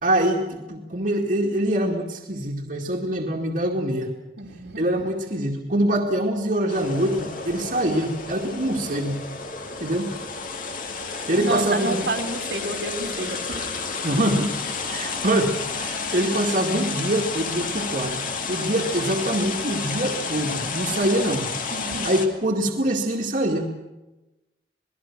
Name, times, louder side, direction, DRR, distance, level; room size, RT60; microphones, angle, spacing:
voice 1, 0.0-4.1 4.8-9.2 9.8-10.1 11.3-12.1 14.0-14.6 14.9-21.5 22.0-23.8, right 1 dB, 50° right, -1 dB, 2.3 m, -24 dB
voice 2, 4.4-4.8 11.4-13.8 21.7-22.1, right 2 dB, 75° right, 2 dB, 2.9 m, -30 dB
sound 1, 6.7-22.3, left 4 dB, 50° left, 2.2 m, -31 dB
27.5 x 19.5 x 6.2 m, 1.0 s
head